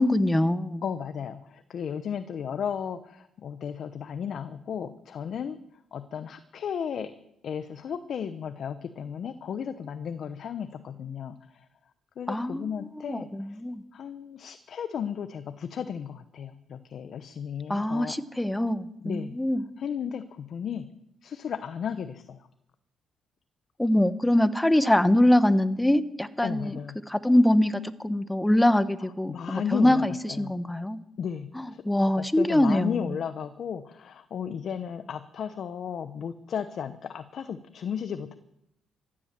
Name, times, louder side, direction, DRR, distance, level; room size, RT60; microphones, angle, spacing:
voice 1, 0.0-0.8 12.3-12.7 13.0-13.8 17.7-19.6 23.8-26.8 27.1-31.0 31.5-33.0, left 1 dB, 10° left, 13 dB, 1.0 m, -23 dB
voice 2, 0.8-5.6 5.9-7.1 7.4-11.6 12.2-13.6 13.9-18.2 19.0-19.4 19.8-20.9 21.2-22.5 26.4-27.0 29.3-30.6 31.2-31.8 32.2-38.3, left 7 dB, 60° left, 11 dB, 0.9 m, -34 dB
14.5 x 11.5 x 7.6 m, 0.80 s
cardioid pair, 90°, 0 cm